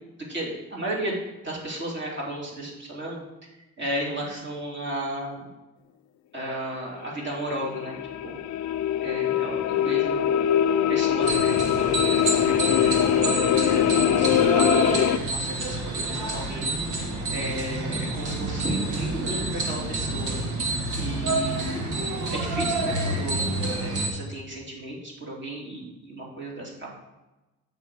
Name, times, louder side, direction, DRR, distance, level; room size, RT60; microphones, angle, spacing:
voice 1, 0.3-1.2 1.4-3.2 3.8-5.5 6.3-8.4 9.0-10.4 10.9-13.4 13.9-16.7 17.3-20.4 21.0-26.7, right 1 dB, 40° right, -3 dB, 2.9 m, -34 dB
sound 1, 7.1-15.2, left 10 dB, 65° left, 0.5 m, -22 dB
sound 2, 11.2-24.1, right 2 dB, 80° right, 1.4 m, -28 dB
7.2 x 5.5 x 4.7 m, 1.0 s
cardioid pair, 90°, 30 cm